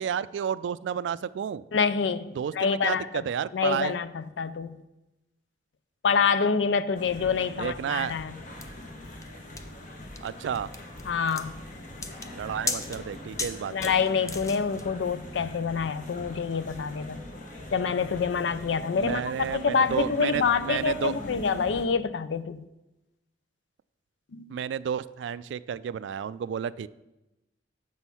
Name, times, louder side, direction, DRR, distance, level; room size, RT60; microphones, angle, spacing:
voice 1, 0.0-1.6 2.4-4.0 7.6-8.2 10.2-10.7 12.3-13.9 19.0-21.2 24.5-26.9, right 8 dB, 85° right, 0.3 m, -31 dB
voice 2, 1.7-3.2 3.5-4.8 6.0-8.4 11.1-11.6 13.7-17.2 17.7-19.2 19.5-22.6 24.3-24.6, left 5 dB, 85° left, 0.4 m, -27 dB
sound 1, 6.9-21.9, left 1 dB, 45° left, 1.0 m, -42 dB
sound 2, 8.6-14.9, left 4 dB, 20° left, 0.5 m, -37 dB
7.0 x 6.2 x 5.6 m
head